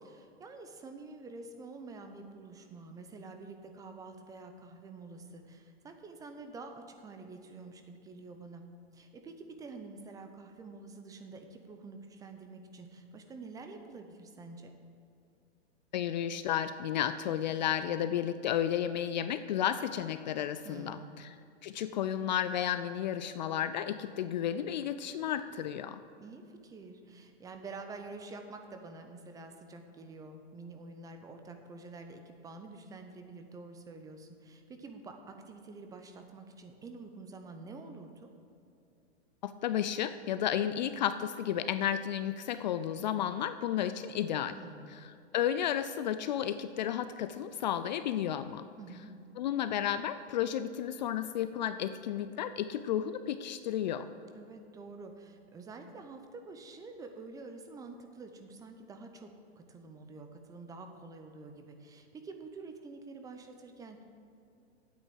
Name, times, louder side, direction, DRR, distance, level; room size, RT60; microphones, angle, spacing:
voice 1, 0.0-8.6 8.9-14.7 20.6-21.2 26.1-38.3 44.6-45.0 48.8-49.1 54.3-59.3 59.6-64.0, right 3 dB, 10° right, 6 dB, 0.5 m, -48 dB
voice 2, 15.9-21.3 21.6-26.0 39.4-44.6 45.3-48.7 49.4-54.1, left 10 dB, 40° left, 12 dB, 0.4 m, -32 dB
9.2 x 8.1 x 7.7 m, 2.6 s
hypercardioid pair, 130°, 35 cm